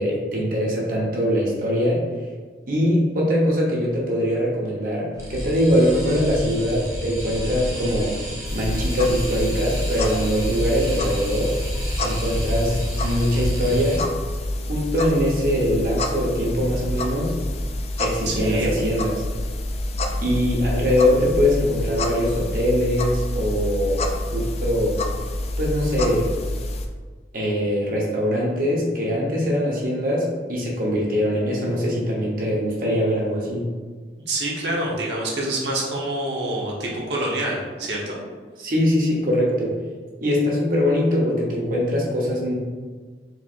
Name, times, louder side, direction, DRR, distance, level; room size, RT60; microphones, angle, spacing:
voice 1, 0.0-2.0 2.7-8.1 8.5-11.5 12.0-14.0 14.7-17.3 18.0-19.2 20.2-24.1 24.3-25.0 25.6-26.3 27.3-33.6 38.6-39.7 40.2-42.5, equal, 50° right, -4 dB, 1.0 m, -22 dB
sound 1, 5.1-14.0, equal, 15° right, 0.8 m, -31 dB
sound 2, 8.5-26.9, left 1 dB, 35° left, 0.3 m, -27 dB
voice 2, 18.3-18.7 34.3-38.2, right 1 dB, 75° right, -2 dB, 1.0 m, -26 dB
4.6 x 3.5 x 2.5 m, 1.5 s
head